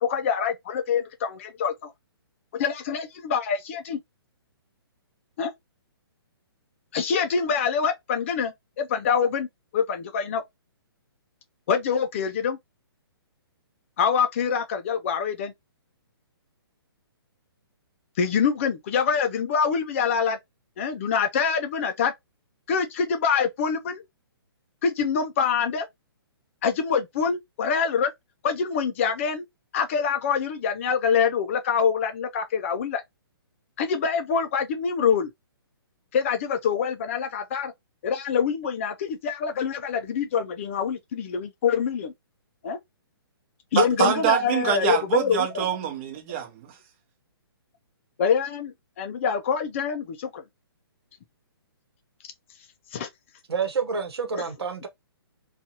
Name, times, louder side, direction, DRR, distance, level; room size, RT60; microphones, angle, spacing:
voice 1, 0.0-1.9 2.5-4.0 5.4-5.5 6.9-9.5 9.7-10.4 11.7-12.6 14.0-15.5 18.2-20.4 20.8-22.1 22.7-24.0 24.8-25.9 26.6-28.1 28.4-29.4 29.7-33.0 33.8-35.3 36.1-37.7 38.0-42.1 42.6-42.8 43.7-45.6 48.2-50.4 52.9-53.1, left 6 dB, 30° left, 0.4 m, -25 dB
voice 2, 43.7-46.7, right 9 dB, 35° right, 1.0 m, -24 dB
voice 3, 53.5-54.9, right 5 dB, 85° right, 0.9 m, -28 dB
2.6 x 2.4 x 2.7 m
hypercardioid pair, 155°, 13 cm